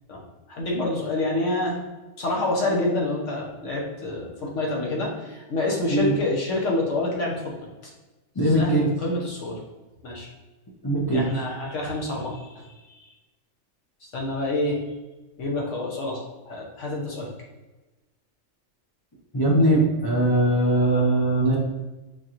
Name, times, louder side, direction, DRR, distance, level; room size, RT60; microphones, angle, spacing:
voice 1, 0.5-1.8 2.2-7.3 8.4-9.6 10.0-10.3 11.1-12.7 14.1-14.8 15.4-17.3, left 2 dB, 65° left, -2 dB, 1.2 m, -27 dB
voice 2, 8.4-8.9 10.8-11.2 19.3-21.6, right 1 dB, 35° left, -5 dB, 0.3 m, -20 dB
5.1 x 2.8 x 2.5 m, 1.1 s
omnidirectional pair, 1.4 m